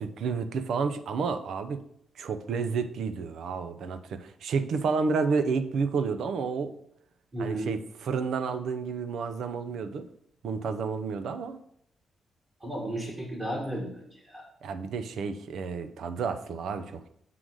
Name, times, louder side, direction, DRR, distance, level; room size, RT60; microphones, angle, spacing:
voice 1, 0.0-1.8 2.2-6.7 7.4-10.1 10.4-11.6 14.6-17.1, right 5 dB, 75° right, 10 dB, 0.6 m, -30 dB
voice 2, 7.3-7.7 12.6-14.4, right 1 dB, 25° right, -3 dB, 1.8 m, -34 dB
7.7 x 3.9 x 6.3 m, 0.72 s
cardioid pair, 105°, 0 cm